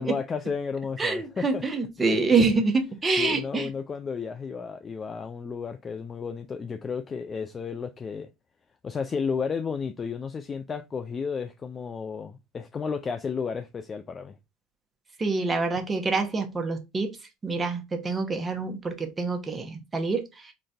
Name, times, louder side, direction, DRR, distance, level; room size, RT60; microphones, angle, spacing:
voice 1, 0.0-1.6 2.0-2.2 3.2-8.3 8.8-14.4, left 5 dB, 30° left, 0.4 m, -32 dB
voice 2, 1.0-3.7 15.2-17.2 17.4-20.5, right 3 dB, 20° right, 0.9 m, -26 dB
3.9 x 2.5 x 3.3 m
supercardioid pair, 90°, 0 cm